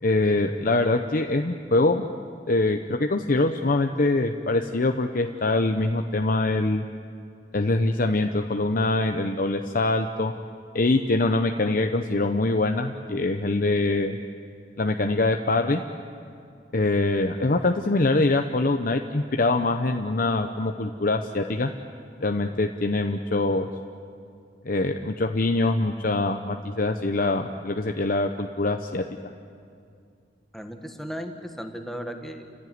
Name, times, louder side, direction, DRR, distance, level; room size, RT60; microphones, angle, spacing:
voice 1, 0.0-2.0 2.5-6.8 7.5-10.3 10.7-14.2 14.8-15.8 16.7-21.7 22.2-23.7 24.6-29.1, left 2 dB, 50° left, 5 dB, 0.9 m, -24 dB
voice 2, 30.5-32.6, equal, ahead, 4 dB, 1.7 m, -36 dB
29.5 x 15.5 x 9.5 m, 2.4 s
head